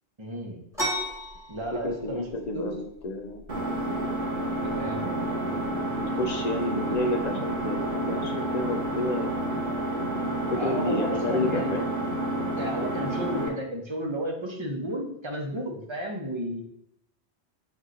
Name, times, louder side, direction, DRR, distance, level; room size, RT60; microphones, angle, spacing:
voice 1, 0.2-0.6 1.5-2.3 2.5-2.7 4.5-5.1 10.6-11.7 12.6-16.6, right 1 dB, 30° right, 1 dB, 0.7 m, -33 dB
sound 1, 0.7-10.1, equal, 5° right, 1.0 m, -40 dB
voice 2, 1.8-3.4 5.1-9.5 10.5-11.9, left 2 dB, 55° left, 3 dB, 0.5 m, -31 dB
Engine, 3.5-13.5, right 1 dB, 45° right, 1.0 m, -29 dB
7.8 x 2.7 x 2.5 m, 0.76 s
omnidirectional pair, 1.1 m